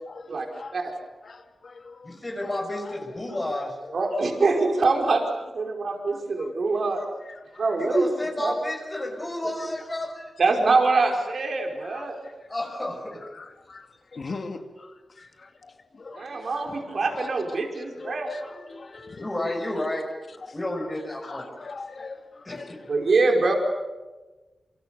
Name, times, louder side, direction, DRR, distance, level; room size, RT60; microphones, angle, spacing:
voice 1, 0.1-0.8 1.2-2.9 3.3-4.1 6.4-6.5 7.2-7.6 10.7-10.8 11.8-12.3 12.6-12.8 13.2-17.4 17.7-19.4 20.4-20.9 21.2-23.0, left 3 dB, 50° left, 6 dB, 2.5 m, -43 dB
voice 2, 2.0-3.8 7.8-10.3 12.5-13.3 19.1-20.2 20.5-21.5 22.4-22.8, left 1 dB, 25° left, 1 dB, 6.0 m, -31 dB
voice 3, 3.9-5.2 5.6-7.0 7.6-8.1 8.4-8.5 10.4-12.2 16.1-18.3 22.9-23.5, right 3 dB, 60° right, 2 dB, 5.1 m, -24 dB
27.5 x 26.0 x 6.8 m, 1.2 s
wide cardioid pair, 85°, 0 cm